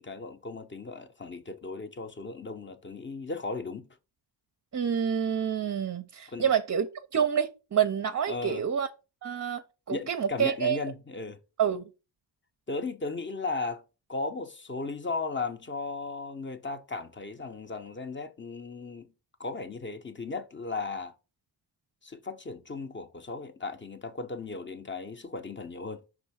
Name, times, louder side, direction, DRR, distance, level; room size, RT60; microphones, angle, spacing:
voice 1, 0.0-3.9 6.3-6.5 8.3-8.6 9.9-11.4 12.7-13.8 14.1-19.1 19.4-21.1 22.0-26.0, left 3 dB, 25° left, 0.6 m, -36 dB
voice 2, 4.7-8.9 9.2-10.8 11.6-11.9, right 8 dB, 40° right, 0.5 m, -28 dB
5.4 x 3.5 x 5.6 m
wide cardioid pair, 150°, 44 cm